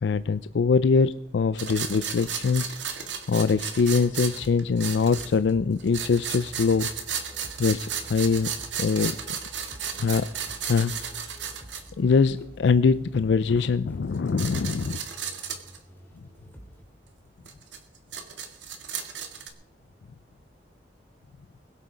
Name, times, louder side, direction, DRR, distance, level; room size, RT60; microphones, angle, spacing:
voice 1, 0.0-3.0 3.3-6.9 7.6-8.5 8.8-9.2 10.0-10.3 10.7-11.3 12.0-15.0, left 5 dB, 70° left, 14 dB, 0.4 m, -23 dB
sound 1, 1.6-5.5 5.8-11.9 13.6-13.7 14.2-15.8 17.5-19.5, right 7 dB, 85° right, 1.9 m, -34 dB
sound 2, 4.2-16.8, equal, 10° left, 2.5 m, -49 dB
21.5 x 8.4 x 5.0 m, 0.90 s
head